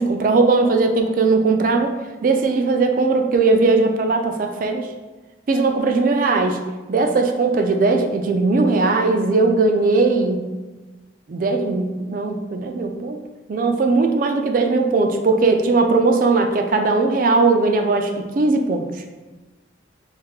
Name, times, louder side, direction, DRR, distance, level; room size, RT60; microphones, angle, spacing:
voice 1, 0.0-1.9 2.2-4.9 5.5-6.6 6.9-10.4 11.3-13.2 13.5-18.8, right 3 dB, 45° right, 5 dB, 0.3 m, -18 dB
3.3 x 2.6 x 3.5 m, 1.2 s
head